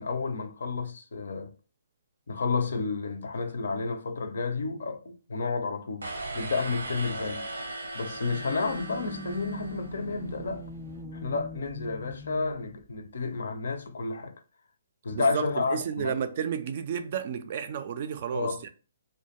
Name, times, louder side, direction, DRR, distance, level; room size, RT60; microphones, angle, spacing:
voice 1, 0.0-1.5 2.3-7.5 7.9-10.7 11.1-14.4 15.0-16.2 18.3-18.6, left 4 dB, 70° left, 0.4 m, -31 dB
sound 1, 6.0-10.2, right 2 dB, 90° right, 0.7 m, -38 dB
sound 2, 8.1-12.8, right 1 dB, ahead, 0.6 m, -42 dB
voice 2, 15.1-18.7, right 7 dB, 50° right, 0.3 m, -32 dB
2.2 x 2.1 x 2.9 m
hypercardioid pair, 140°, 0 cm